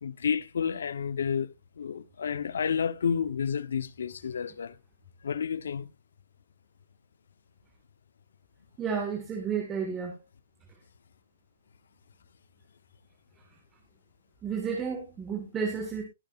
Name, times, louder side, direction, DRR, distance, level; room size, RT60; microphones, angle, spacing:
voice 1, 0.0-4.7 5.2-5.9, left 7 dB, 75° left, 0.8 m, -30 dB
voice 2, 8.8-10.2 14.4-16.0, right 6 dB, 15° right, 1.7 m, -31 dB
20.0 x 6.9 x 2.4 m
hypercardioid pair, 165°, 0 cm